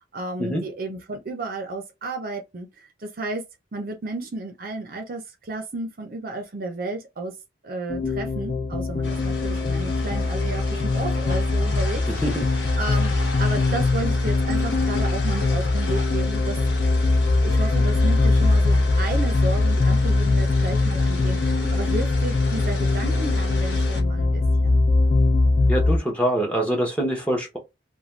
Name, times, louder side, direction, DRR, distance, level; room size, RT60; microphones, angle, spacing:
voice 1, 0.0-3.4 3.7-7.3 7.6-12.0 12.8-16.6 17.4-24.8, right 2 dB, 50° right, 0.6 m, -32 dB
sound 1, 7.9-26.0, left 3 dB, 40° left, 0.4 m, -21 dB
sound 2, 9.0-24.0, left 1 dB, 80° left, 1.1 m, -36 dB
voice 2, 12.1-12.4 25.7-27.6, right 1 dB, 5° left, 0.8 m, -24 dB
2.5 x 2.2 x 3.1 m
head